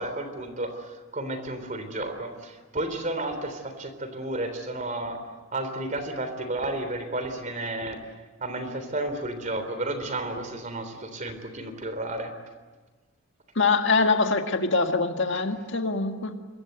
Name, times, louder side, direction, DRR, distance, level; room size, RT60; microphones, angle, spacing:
voice 1, 0.0-5.2 5.5-8.0 8.4-12.3, right 2 dB, 35° right, 8 dB, 3.5 m, -32 dB
voice 2, 13.6-16.3, left 4 dB, 60° left, 5 dB, 1.8 m, -24 dB
27.0 x 23.0 x 8.0 m, 1.3 s
head